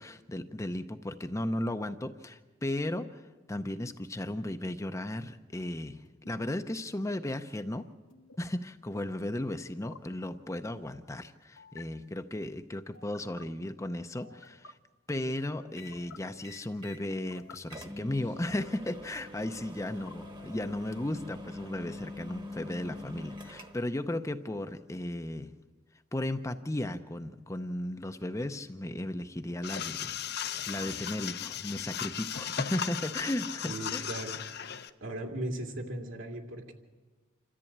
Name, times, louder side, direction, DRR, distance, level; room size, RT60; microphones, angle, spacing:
voice 1, 0.0-3.2 3.5-7.9 8.4-14.8 15.1-25.5 26.1-30.1 30.7-34.1 34.7-34.8, left 1 dB, 15° left, 8 dB, 0.6 m, -35 dB
sound 1, 6.0-6.3 8.1-8.4 9.7-10.0 11.6-11.8 12.9-13.4 14.2-14.7 15.7-16.2 17.1-17.6 18.6-19.2 19.9-20.7, left 5 dB, 75° left, 1.0 m, -53 dB
sound 2, 15.8-16.0 16.4-17.0 17.4-17.5 17.7-24.0, left 2 dB, 25° right, 1.2 m, -44 dB
sound 3, 29.6-34.9, left 9 dB, 50° left, 0.7 m, -36 dB
voice 2, 33.6-34.4 35.0-36.7, right 1 dB, 75° right, 1 dB, 2.6 m, -37 dB
27.0 x 14.0 x 8.6 m, 1.4 s
head